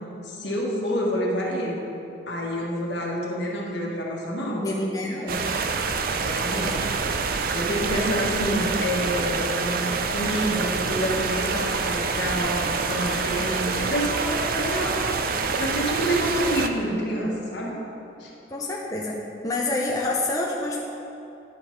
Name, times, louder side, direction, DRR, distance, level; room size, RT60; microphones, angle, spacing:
voice 1, 0.2-1.9 2.3-4.7 5.4-5.6 6.1-6.9 7.5-15.0 15.6-17.8 18.2-18.3, equal, 65° left, -2 dB, 1.4 m, -28 dB
voice 2, 4.6-5.5 18.5-19.2 19.4-20.8, left 2 dB, 20° left, -3 dB, 0.6 m, -27 dB
sound 1, 5.3-16.7, right 4 dB, 50° right, 0.4 m, -26 dB
9.9 x 4.5 x 5.2 m, 2.9 s
head